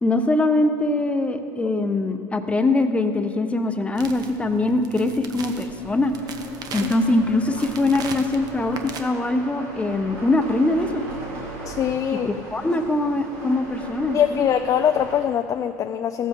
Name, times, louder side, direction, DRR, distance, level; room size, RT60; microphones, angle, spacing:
voice 1, 0.0-6.1 6.7-11.0 12.5-14.4, left 2 dB, 15° left, 7 dB, 0.8 m, -22 dB
sound 1, 4.0-9.0, right 5 dB, 50° right, 0.9 m, -38 dB
sound 2, 5.7-15.2, right 2 dB, 80° right, 2.5 m, -38 dB
voice 2, 11.6-12.3 14.1-16.3, left 9 dB, 40° left, 8 dB, 0.4 m, -22 dB
14.5 x 7.5 x 3.6 m, 2.5 s
supercardioid pair, 90°, 9 cm